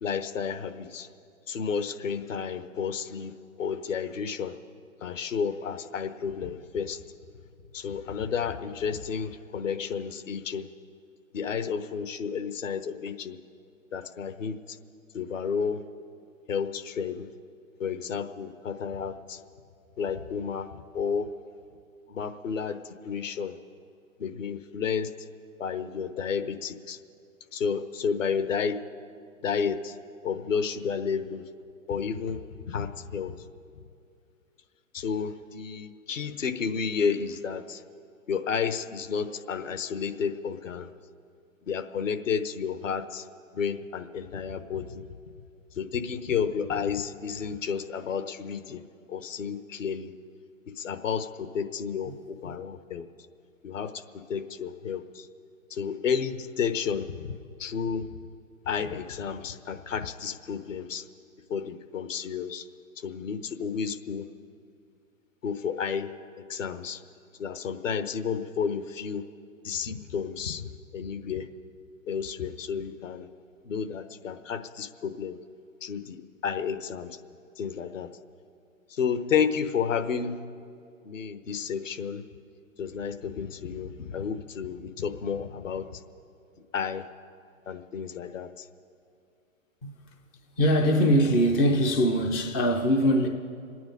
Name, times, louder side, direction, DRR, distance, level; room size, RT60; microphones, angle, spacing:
voice 1, 0.0-1.1 1.5-3.3 3.6-4.6 5.0-7.0 7.7-10.7 11.3-13.4 13.9-14.6 15.1-15.8 16.5-17.3 17.8-19.4 20.0-20.7 20.9-21.3 22.1-23.6 24.2-25.1 25.6-27.0 27.5-28.8 29.4-30.0 30.2-31.4 31.9-32.4 32.7-33.4 34.9-37.8 38.3-40.9 41.7-43.3 43.5-45.0 45.8-48.8 49.1-50.1 50.8-53.0 53.6-54.0 54.3-55.3 55.7-57.3 57.6-58.1 58.7-61.0 61.5-62.6 63.0-64.2 65.4-66.1 66.4-67.0 67.4-69.2 69.6-71.5 72.1-73.3 73.6-75.4 75.8-77.2 77.6-78.1 78.9-80.4 81.0-82.2 82.8-86.0 86.7-87.1 87.7-88.7, left 6 dB, 70° left, 1.2 m, -31 dB
voice 2, 90.6-93.3, equal, 10° left, 0.3 m, -22 dB
27.0 x 9.4 x 5.2 m
figure-of-eight pair, 120°, 41 cm